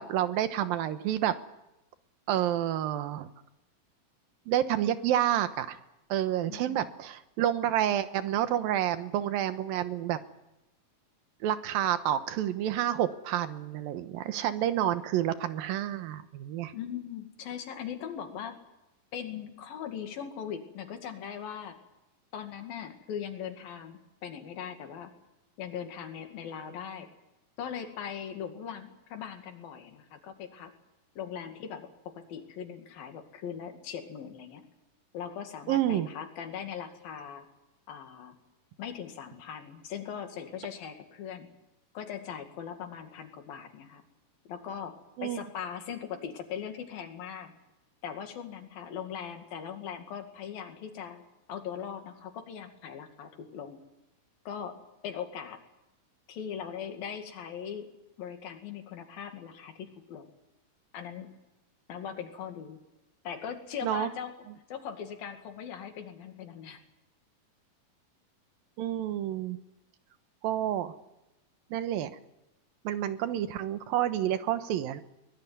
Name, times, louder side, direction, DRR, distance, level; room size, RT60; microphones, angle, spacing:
voice 1, 0.0-1.3 2.3-3.3 4.5-5.8 6.1-10.2 11.4-16.7 35.7-36.1 45.2-45.4 63.8-64.1 68.8-69.6 70.4-70.9 71.7-72.1 72.8-75.0, right 11 dB, 90° right, 10 dB, 2.9 m, -29 dB
voice 2, 6.5-6.9 16.7-18.6 19.1-21.8 22.3-25.1 25.6-27.1 27.6-30.7 31.2-34.6 35.1-37.5 37.9-38.4 38.8-41.5 41.9-44.0 44.5-47.5 48.0-51.2 51.5-53.8 54.5-55.6 56.3-57.9 58.2-60.3 60.9-61.3 61.9-62.8 63.2-64.4 64.7-66.8 73.2-73.3, left 8 dB, 85° left, 5 dB, 4.0 m, -40 dB
23.0 x 20.0 x 9.5 m, 0.94 s
omnidirectional pair, 4.0 m